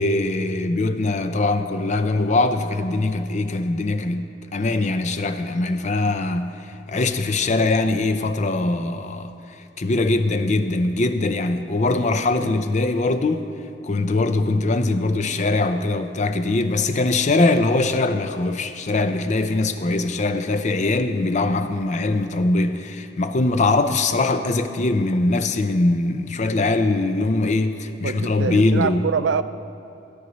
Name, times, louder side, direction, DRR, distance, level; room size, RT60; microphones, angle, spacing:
voice 1, 0.0-6.5 6.9-9.3 9.8-13.5 13.9-29.0, left 2 dB, 40° left, 0.5 m, -22 dB
voice 2, 28.0-29.4, right 6 dB, 70° right, 0.4 m, -24 dB
16.5 x 9.8 x 3.1 m
head